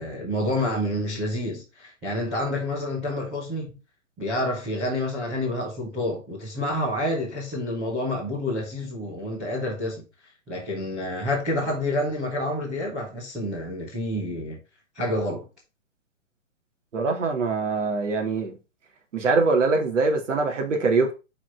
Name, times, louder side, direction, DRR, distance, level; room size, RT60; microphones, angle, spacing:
voice 1, 0.0-3.7 4.2-10.0 10.5-14.6 14.9-15.5, left 1 dB, 5° right, 0.5 m, -28 dB
voice 2, 16.9-18.5 19.1-21.1, right 3 dB, 65° right, 2.5 m, -23 dB
6.0 x 4.6 x 4.6 m
hypercardioid pair, 160°, 39 cm